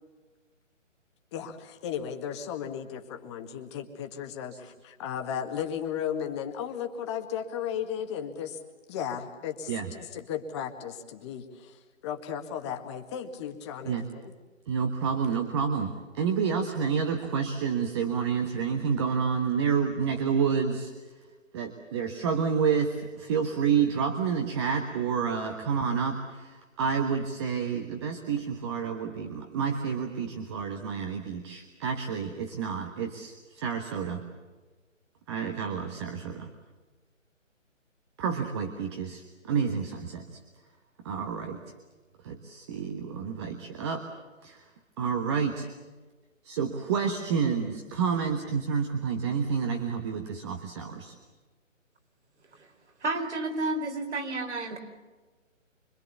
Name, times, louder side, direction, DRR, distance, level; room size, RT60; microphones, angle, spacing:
voice 1, 1.3-8.6 8.9-11.8 12.0-14.3, left 8 dB, 20° left, 5 dB, 1.9 m, -35 dB
voice 2, 14.7-20.9 21.5-34.2 35.3-36.5 38.2-40.4 41.0-41.6 42.2-44.0 44.4-44.7 45.0-45.7 46.4-51.1, right 6 dB, 20° right, 5 dB, 1.4 m, -29 dB
voice 3, 53.0-54.8, right 2 dB, 60° right, 5 dB, 4.7 m, -31 dB
25.5 x 24.5 x 7.0 m, 1.3 s
figure-of-eight pair, 150°, 39 cm